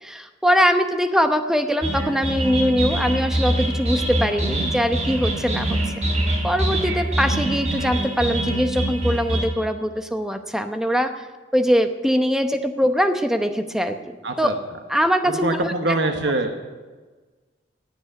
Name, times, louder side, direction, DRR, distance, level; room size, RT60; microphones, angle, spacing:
voice 1, 0.0-5.8 6.4-11.2 11.5-14.5 14.9-15.7, equal, 5° right, 7 dB, 0.8 m, -22 dB
sound 1, 1.8-9.5, right 1 dB, 35° right, 3.6 m, -24 dB
voice 2, 14.2-14.5 15.2-16.5, right 2 dB, 75° right, 4 dB, 1.2 m, -24 dB
17.5 x 6.2 x 10.0 m, 1.4 s
head